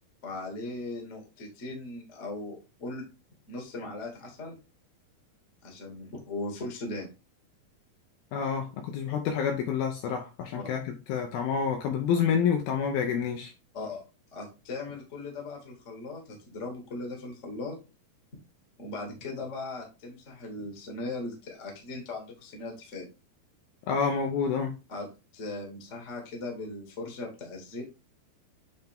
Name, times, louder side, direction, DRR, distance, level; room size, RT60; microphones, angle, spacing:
voice 1, 0.2-3.0 3.5-4.6 5.6-7.1 10.5-10.6 13.7-14.0 14.3-17.7 18.8-23.1 24.9-25.1 25.3-27.8, left 2 dB, 35° left, 1 dB, 1.1 m, -38 dB
voice 2, 8.3-13.5 23.9-24.7, left 7 dB, 75° left, 3 dB, 2.3 m, -28 dB
8.2 x 3.4 x 3.5 m, 0.29 s
omnidirectional pair, 4.9 m